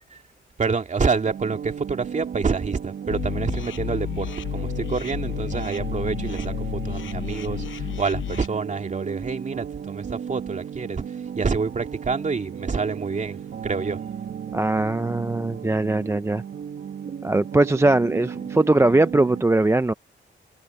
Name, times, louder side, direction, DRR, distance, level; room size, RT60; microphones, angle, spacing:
voice 1, 0.6-11.0 11.4-14.0, right 4 dB, 40° right, 2.5 m, -27 dB
sound 1, 1.2-19.4, right 8 dB, 65° right, 1.7 m, -35 dB
sound 2, 3.1-8.5, left 10 dB, 75° left, 0.8 m, -31 dB
voice 2, 14.5-16.4 17.2-19.9, right 2 dB, 15° right, 0.5 m, -20 dB
cardioid pair, 105°, 20 cm